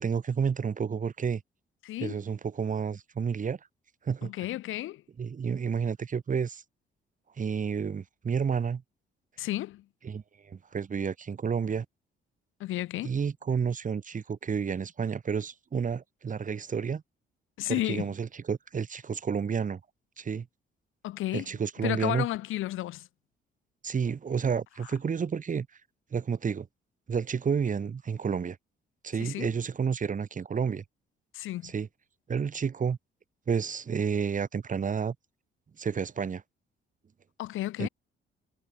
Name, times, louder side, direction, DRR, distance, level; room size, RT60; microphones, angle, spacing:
voice 1, 0.0-1.4 2.0-3.6 4.0-4.3 5.2-6.6 7.4-8.8 10.0-11.9 13.0-17.0 17.7-19.8 20.2-20.5 21.3-22.3 23.8-25.7 26.1-26.7 27.1-28.6 29.0-30.8 31.6-31.9 32.3-33.0 33.5-35.2 35.8-36.4 37.8-37.9, right 6 dB, 40° right, 2.2 m, -30 dB
voice 2, 1.8-2.2 4.2-5.0 9.4-9.9 12.6-13.1 17.6-18.1 21.0-21.5 21.8-23.1 24.8-24.9 29.2-29.5 31.3-31.7 37.4-37.9, left 15 dB, 90° left, 3.3 m, -33 dB
cardioid pair, 90°, 20 cm